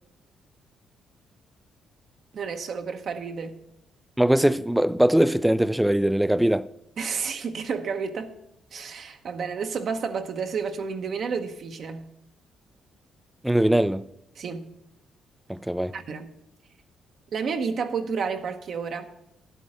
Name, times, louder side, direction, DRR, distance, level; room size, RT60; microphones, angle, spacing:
voice 1, 2.3-3.6 7.0-8.3 8.7-12.1 14.4-14.7 15.9-16.3 17.3-19.1, right 5 dB, 60° right, 0.9 m, -31 dB
voice 2, 4.2-6.7 13.4-14.0 15.5-16.0, right 1 dB, 5° right, 0.4 m, -21 dB
11.0 x 8.1 x 5.0 m
cardioid pair, 90°, 0 cm